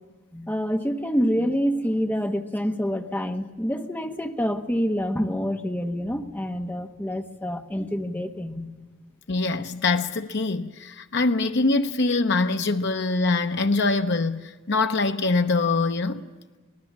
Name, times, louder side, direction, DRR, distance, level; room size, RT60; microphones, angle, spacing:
voice 1, 0.3-8.7, equal, 10° left, 1.2 m, -27 dB
voice 2, 9.3-16.2, left 3 dB, 60° left, 0.9 m, -23 dB
24.5 x 18.5 x 7.4 m
head